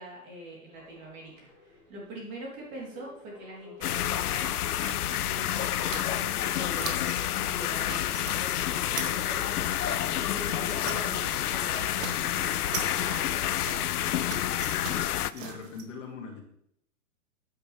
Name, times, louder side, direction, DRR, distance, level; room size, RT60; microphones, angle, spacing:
voice 1, 0.0-14.3, right 1 dB, 20° right, -4 dB, 3.8 m, -43 dB
sound 1, 0.7-12.3 13.0-13.1, left 1 dB, 5° right, 5.0 m, -52 dB
sound 2, 3.8-15.3, left 12 dB, 80° left, 0.7 m, -29 dB
sound 3, 4.8-6.5 6.7-7.3 7.6-8.4 8.7-11.2 11.4-11.6 11.9-15.8, right 6 dB, 60° right, 1.9 m, -42 dB
voice 2, 15.3-16.4, left 5 dB, 55° left, 1 dB, 2.7 m, -41 dB
11.5 x 9.6 x 3.5 m, 0.72 s
hypercardioid pair, 165°, 45 cm